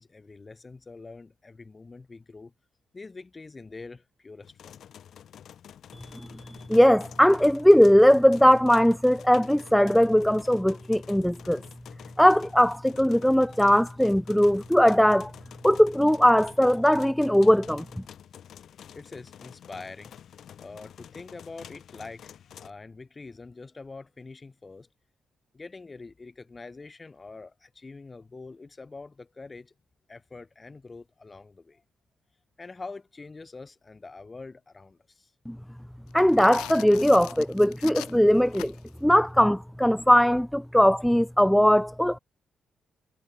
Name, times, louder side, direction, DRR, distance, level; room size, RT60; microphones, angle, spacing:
voice 1, 0.0-2.5 2.9-4.8 18.9-20.1 20.6-24.9 25.5-29.7 30.1-31.8 32.6-35.3, left 3 dB, 35° left, 3.7 m, -44 dB
sound 1, 4.4-22.7, left 9 dB, 70° left, 2.0 m, -49 dB
voice 2, 6.7-11.6 12.2-15.3 15.6-17.8 35.5-35.6 36.1-38.7 39.0-42.2, equal, 5° left, 0.5 m, -20 dB
sound 2, 36.1-39.0, left 18 dB, 85° left, 2.1 m, -42 dB
supercardioid pair, 50°, 0 cm